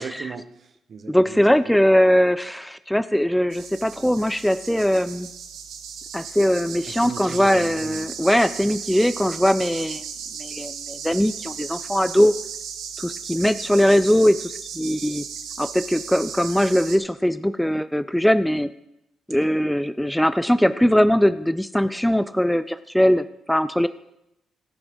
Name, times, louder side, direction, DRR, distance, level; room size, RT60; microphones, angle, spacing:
voice 1, 0.0-1.7 6.9-8.0, right 5 dB, 50° right, 7 dB, 1.0 m, -38 dB
voice 2, 1.1-5.3 6.1-10.0 10.4-12.3 13.0-15.3 15.6-18.7 19.3-23.9, equal, 5° left, 13 dB, 0.4 m, -20 dB
sound 1, 3.5-17.0, right 7 dB, 80° right, 1.4 m, -36 dB
16.5 x 6.0 x 5.3 m, 0.85 s
cardioid pair, 90°, 0 cm